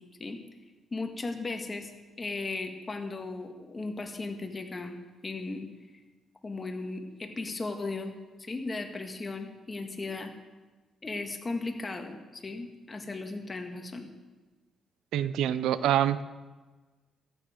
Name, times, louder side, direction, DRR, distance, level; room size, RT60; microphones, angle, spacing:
voice 1, 0.9-4.9 5.2-5.7 5.9-6.0 6.4-8.1 8.4-10.3 11.0-14.1, left 3 dB, 25° left, 4 dB, 1.7 m, -36 dB
voice 2, 15.1-16.2, right 11 dB, 85° right, 15 dB, 0.5 m, -26 dB
14.0 x 9.3 x 5.1 m, 1.3 s
cardioid pair, 90°, 0 cm